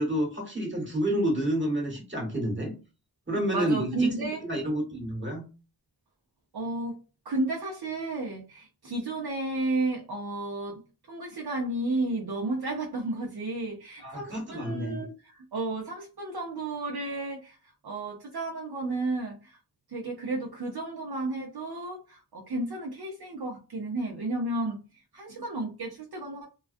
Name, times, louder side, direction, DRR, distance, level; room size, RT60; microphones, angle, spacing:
voice 1, 0.0-2.7 3.3-4.1 4.4-5.4 14.0-15.0, right 1 dB, 25° right, 1.2 m, -29 dB
voice 2, 3.5-4.4 6.5-7.0 7.2-10.8 11.1-19.6 19.9-26.5, right 2 dB, 65° right, 0.6 m, -32 dB
2.3 x 2.2 x 2.5 m
wide cardioid pair, 45°, 41 cm